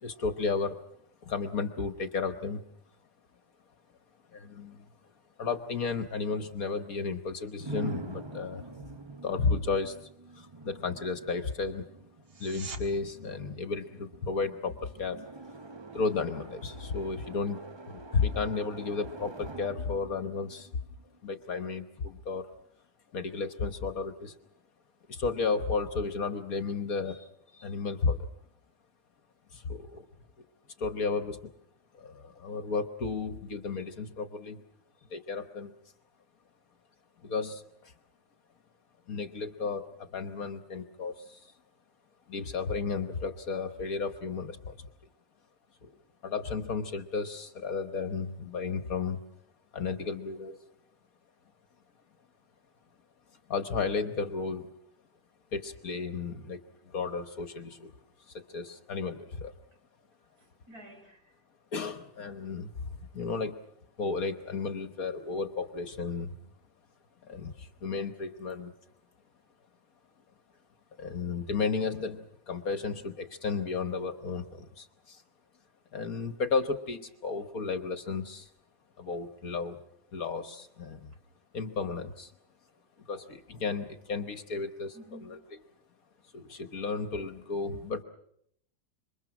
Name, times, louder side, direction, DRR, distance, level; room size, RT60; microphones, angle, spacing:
voice 1, 0.0-0.8 1.2-2.6 4.3-4.9 5.4-8.6 9.2-11.9 12.4-15.3 15.9-17.6 17.9-20.7 21.2-22.5 23.1-24.3 25.1-28.2 29.5-30.0 30.8-31.4 31.9-34.6 35.1-35.7 37.2-37.9 39.1-41.5 42.3-44.9 45.8-45.9 46.2-49.2 49.7-50.7 53.5-54.7 55.5-57.9 58.3-59.5 61.7-63.6 64.0-66.3 67.2-68.7 71.0-75.2 75.9-78.5 79.0-79.8 80.1-81.1 81.5-82.3 83.1-85.0 85.2-85.4 86.3-88.0, left 4 dB, 55° left, 1.5 m, -33 dB
sound 1, 7.6-21.4, right 2 dB, 30° right, 0.5 m, -46 dB
sound 2, 12.2-12.8 24.2-24.3, right 5 dB, 90° right, 2.8 m, -43 dB
voice 2, 60.2-61.3 78.1-78.3 84.9-85.5, right 1 dB, 55° right, 4.9 m, -52 dB
27.5 x 24.0 x 6.0 m
omnidirectional pair, 1.9 m